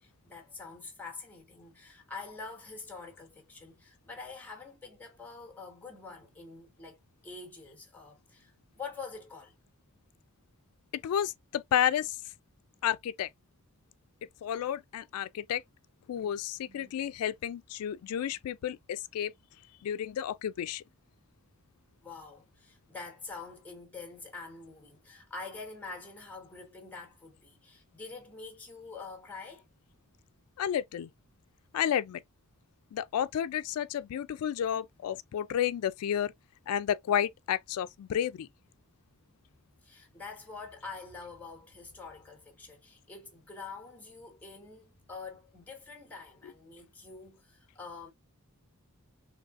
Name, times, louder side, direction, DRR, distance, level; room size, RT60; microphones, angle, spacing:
voice 1, 0.0-9.5 16.6-17.0 22.0-29.7 39.8-48.1, left 4 dB, 5° left, 1.1 m, -46 dB
voice 2, 10.9-12.3 12.8-13.3 14.4-15.6 16.1-19.3 19.8-20.8 30.6-31.1 31.7-32.2 32.9-36.3 36.7-38.5 46.4-46.5, left 9 dB, 80° left, 0.3 m, -31 dB
3.9 x 2.8 x 2.4 m
head